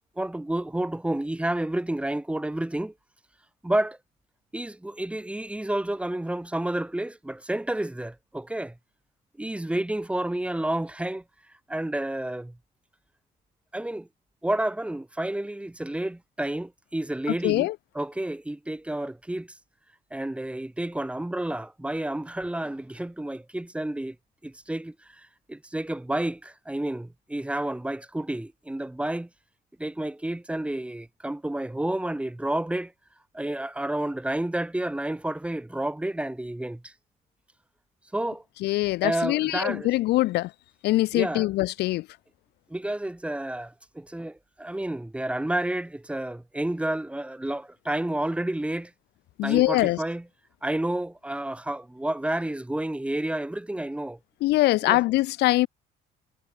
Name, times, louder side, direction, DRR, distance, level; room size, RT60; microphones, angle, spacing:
voice 1, 0.2-2.9 3.6-4.0 4.5-8.8 9.4-11.2 11.7-12.6 13.7-14.1 14.4-17.7 17.9-19.5 20.1-24.2 24.4-29.3 29.8-32.9 33.3-36.9 38.1-38.4 39.0-39.9 41.1-41.5 42.7-48.9 49.4-50.2 50.6-54.2 54.9-55.0, right 1 dB, 5° right, 3.0 m, -30 dB
voice 2, 17.3-17.8 38.6-40.5 40.8-42.1 49.4-50.0 54.4-55.7, left 18 dB, 80° left, 1.1 m, -23 dB
cardioid pair, 110°, 17 cm